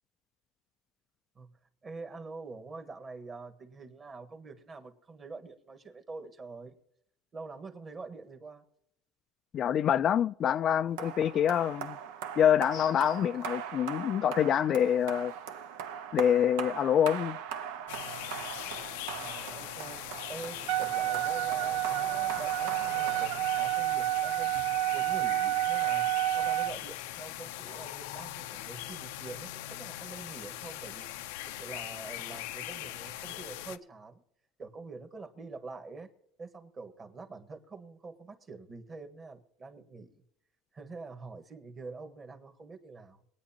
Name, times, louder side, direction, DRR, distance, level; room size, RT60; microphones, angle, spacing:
voice 1, 1.8-6.7 7.3-8.6 19.2-20.0 20.3-24.5 24.9-26.1 26.4-31.1 31.4-34.2 34.6-36.1 36.4-40.2 40.7-43.2, right 3 dB, 25° right, 1.5 m, -45 dB
voice 2, 9.5-12.0 12.4-15.3 16.1-17.4, left 9 dB, 40° left, 0.3 m, -26 dB
sound 1, 11.0-24.0, right 8 dB, 85° right, 1.0 m, -41 dB
sound 2, 17.9-33.8, left 14 dB, 90° left, 0.6 m, -41 dB
Wind instrument woodwind instrument, 20.7-26.7, right 15 dB, 60° right, 0.6 m, -29 dB
23.0 x 9.2 x 2.9 m
cardioid pair, 135°, 0 cm